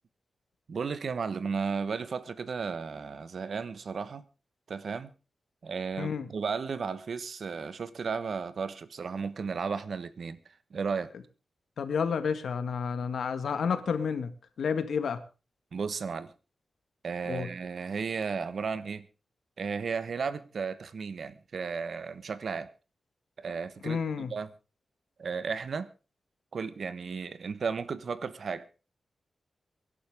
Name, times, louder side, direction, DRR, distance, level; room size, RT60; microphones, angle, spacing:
voice 1, 0.7-4.2 4.7-5.1 5.6-10.4 10.7-11.1 15.7-16.3 17.0-19.1 19.6-22.7 23.4-24.5 25.2-25.9 26.5-28.7, right 5 dB, 55° right, 1.1 m, -34 dB
voice 2, 6.0-6.3 11.8-14.3 14.6-15.2 17.3-17.5 23.8-24.3, left 6 dB, 85° left, 1.6 m, -30 dB
24.0 x 11.5 x 3.6 m
wide cardioid pair, 170°, 0 cm